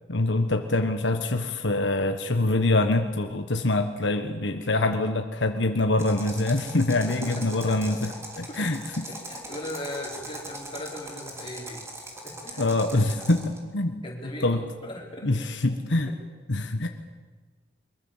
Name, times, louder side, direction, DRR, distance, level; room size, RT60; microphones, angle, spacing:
voice 1, 0.1-9.0 12.6-14.0 14.4-14.7 15.2-16.1 16.5-16.9, left 2 dB, 75° left, 6 dB, 1.4 m, -25 dB
sound 1, 6.0-13.6, right 1 dB, 15° right, 3.4 m, -40 dB
voice 2, 7.0-7.8 8.3-8.7 9.1-11.9 12.2-12.6 13.1-13.2 14.0-15.8 16.0-16.1, left 1 dB, 25° left, -2 dB, 5.1 m, -39 dB
24.0 x 22.0 x 7.3 m, 1.3 s
head